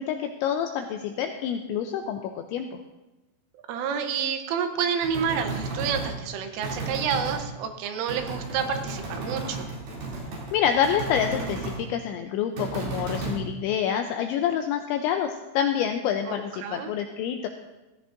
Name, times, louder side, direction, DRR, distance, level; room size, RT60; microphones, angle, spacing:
voice 1, 0.0-2.8 10.5-17.5, left 8 dB, 85° left, 5 dB, 2.6 m, -27 dB
voice 2, 3.7-9.7 16.3-16.9, right 7 dB, 80° right, 6 dB, 3.3 m, -29 dB
sound 1, 5.0-6.1 6.6-7.4 8.1-11.8 12.6-13.4, right 3 dB, 50° right, 4.1 m, -33 dB
15.5 x 14.0 x 2.6 m, 1.1 s
omnidirectional pair, 5.9 m